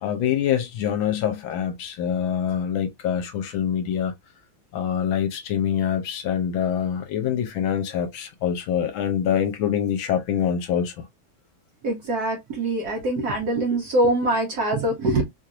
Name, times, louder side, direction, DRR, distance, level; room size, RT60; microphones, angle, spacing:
voice 1, 0.0-4.1 4.7-11.1, left 9 dB, 75° left, 1.4 m, -25 dB
voice 2, 11.8-15.2, right 1 dB, 65° right, 1.0 m, -23 dB
3.4 x 2.9 x 2.4 m
omnidirectional pair, 2.4 m